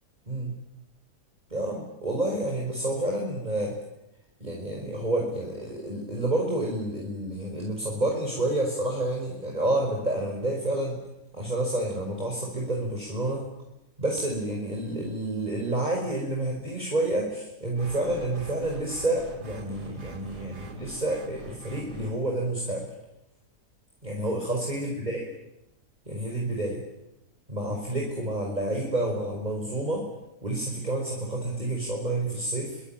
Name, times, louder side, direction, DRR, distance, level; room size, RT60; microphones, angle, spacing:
voice 1, 1.5-3.8 4.4-11.0 11.3-13.5 14.0-22.9 24.0-25.3 26.1-26.8 27.5-30.1 30.4-32.8, right 1 dB, 25° right, 0 dB, 5.5 m, -29 dB
sound 1, 17.8-22.1, right 1 dB, 75° right, 3.3 m, -44 dB
25.5 x 25.5 x 9.1 m, 0.89 s
omnidirectional pair, 1.7 m